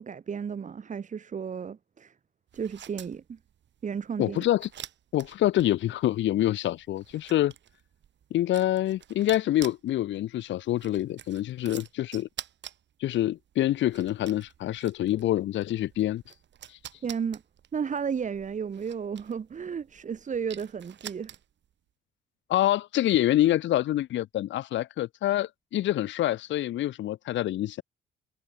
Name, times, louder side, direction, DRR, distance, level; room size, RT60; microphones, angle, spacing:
voice 1, 0.0-2.1 2.5-3.4 3.8-4.4 17.0-17.4 17.7-21.3, right 6 dB, 40° right, 1.2 m, -33 dB
sound 1, 2.5-21.7, right 10 dB, 65° right, 6.4 m, -48 dB
voice 2, 4.2-4.7 5.1-7.5 8.3-12.3 13.0-16.2 16.7-16.8 22.5-27.8, left 13 dB, 70° left, 0.7 m, -26 dB
cardioid pair, 90°, 20 cm